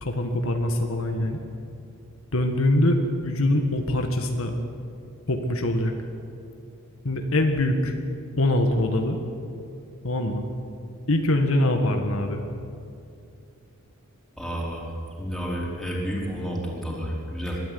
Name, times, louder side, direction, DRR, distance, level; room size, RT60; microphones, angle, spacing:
voice 1, 0.0-1.4 2.3-4.5 5.3-5.9 7.0-8.0 8.4-9.2 10.0-10.5 11.1-12.4, left 1 dB, 65° left, 4 dB, 1.7 m, -23 dB
voice 2, 14.4-14.9 15.2-17.6, equal, ahead, -4 dB, 4.8 m, -30 dB
22.0 x 13.5 x 9.5 m, 2.5 s
head